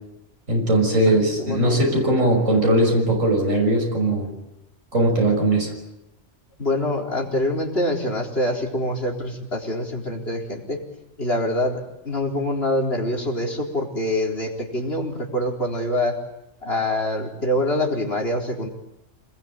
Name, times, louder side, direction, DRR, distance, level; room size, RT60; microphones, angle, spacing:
voice 1, 0.5-4.3 4.9-5.7, right 1 dB, 80° right, 1 dB, 6.4 m, -19 dB
voice 2, 1.1-1.8 6.6-10.8 11.2-16.2 16.6-18.7, left 1 dB, 50° left, 1 dB, 4.5 m, -25 dB
27.0 x 20.5 x 9.2 m, 0.86 s
omnidirectional pair, 1.3 m